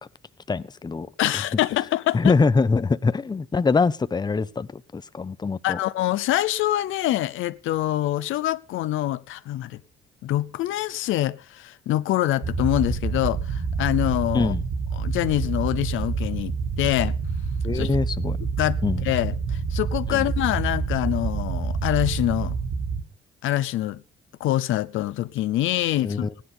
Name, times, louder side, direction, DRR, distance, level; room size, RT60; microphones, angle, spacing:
voice 1, 0.5-1.1 2.1-5.8 14.3-14.6 17.6-18.4 18.8-19.0 20.1-20.3 26.0-26.3, left 4 dB, 20° left, 0.7 m, -23 dB
voice 2, 1.2-2.3 5.6-9.8 10.2-14.5 15.0-17.2 17.7-17.9 18.6-22.6 23.4-24.0 24.4-26.4, left 14 dB, 85° left, 0.8 m, -25 dB
sound 1, 12.4-23.0, right 5 dB, 60° right, 2.3 m, -27 dB
16.0 x 10.5 x 5.6 m
cardioid pair, 90°, 20 cm